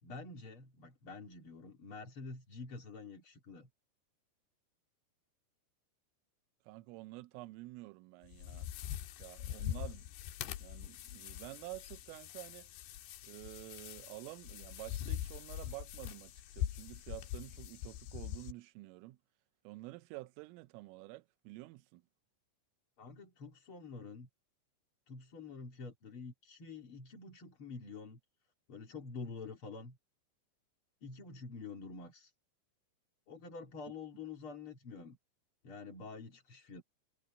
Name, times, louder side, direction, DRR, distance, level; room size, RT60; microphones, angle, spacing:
voice 1, 0.0-3.7 23.0-24.3 25.1-28.2 28.7-30.0 31.0-32.3 33.3-35.2 35.6-36.8, left 4 dB, 40° left, 2.1 m, -47 dB
voice 2, 6.7-8.7 9.2-10.1 10.5-12.7 13.2-19.2 19.6-22.0, right 20 dB, 85° right, 3.4 m, -49 dB
sound 1, 8.2-18.5, left 12 dB, 70° left, 2.9 m, -43 dB
omnidirectional pair, 5.8 m